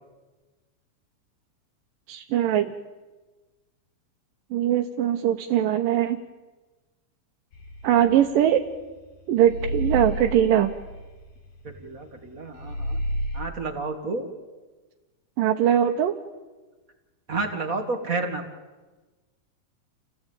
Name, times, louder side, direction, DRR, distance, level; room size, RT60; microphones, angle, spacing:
voice 1, 2.1-2.7 4.5-6.2 7.8-8.6 9.3-10.7 15.4-16.2, right 10 dB, 80° right, 3 dB, 2.6 m, -21 dB
sound 1, 7.5-9.0 9.4-12.3 12.6-13.5, equal, 80° left, 4.8 m, -31 dB
voice 2, 11.6-13.0 13.3-14.3 17.3-18.4, right 3 dB, 30° right, 5 dB, 1.8 m, -30 dB
29.5 x 17.0 x 9.0 m, 1.3 s
omnidirectional pair, 3.9 m